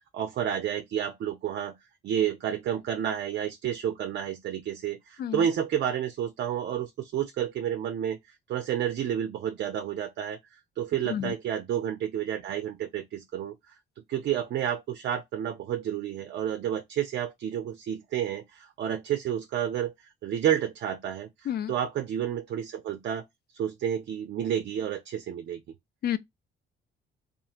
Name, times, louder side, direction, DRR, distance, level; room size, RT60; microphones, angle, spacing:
voice 1, 0.1-1.8 2.0-13.8 14.1-23.2 23.5-25.6, right 9 dB, 60° right, 0.5 m, -30 dB
voice 2, 5.2-5.4 11.1-11.3 21.5-21.7 26.0-26.2, left 10 dB, 55° left, 0.4 m, -29 dB
2.8 x 2.5 x 2.4 m
cardioid pair, 90°, 20 cm